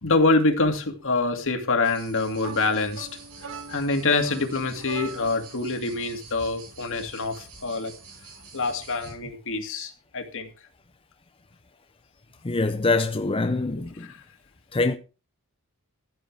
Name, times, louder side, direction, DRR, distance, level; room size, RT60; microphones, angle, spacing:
voice 1, 0.0-3.1 3.7-7.9 8.5-10.5 13.7-13.8 14.1-14.2, left 3 dB, 60° left, 2.3 m, -25 dB
sound 1, 1.8-9.1, right 4 dB, 90° right, 5.4 m, -47 dB
sound 2, 2.4-5.5, right 4 dB, 65° right, 1.9 m, -41 dB
voice 2, 12.4-14.1 14.7-15.0, left 3 dB, 25° left, 0.7 m, -24 dB
15.0 x 8.0 x 4.7 m
head